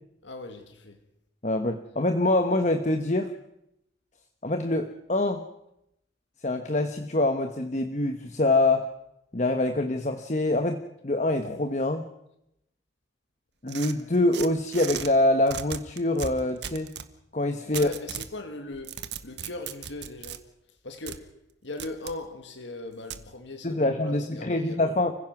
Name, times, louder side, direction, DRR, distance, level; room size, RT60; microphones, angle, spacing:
voice 1, 0.2-1.0 17.7-20.5 20.8-21.3 21.6-25.0, left 2 dB, 85° left, 2.1 m, -39 dB
voice 2, 1.4-3.3 4.4-5.4 6.4-8.9 9.3-12.0 13.6-16.9 17.3-17.9 23.6-25.1, left 2 dB, 40° left, 1.1 m, -25 dB
sound 1, 13.7-15.1 15.5-17.1 17.7-18.3 18.7-20.4 21.1-21.2 21.8-22.2 23.1-23.2, right 8 dB, 70° right, 1.3 m, -37 dB
29.5 x 16.0 x 6.0 m
head